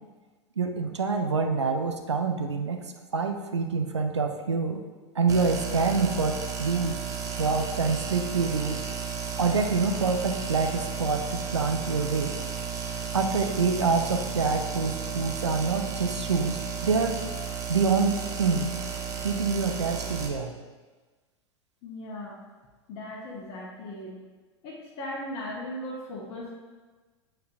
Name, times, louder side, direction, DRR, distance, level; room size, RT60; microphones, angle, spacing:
voice 1, 0.6-2.8 3.1-4.8 5.2-8.8 9.4-12.4 13.1-17.1 17.7-18.8 19.2-20.5, right 4 dB, 75° right, 4 dB, 0.7 m, -26 dB
sound 1, 5.3-20.3, right 6 dB, 25° right, 0.8 m, -33 dB
voice 2, 21.8-22.4 22.9-24.2 24.6-26.5, left 1 dB, 40° left, -5 dB, 1.3 m, -37 dB
8.3 x 4.4 x 2.6 m, 1.3 s
figure-of-eight pair, 90°, 15 cm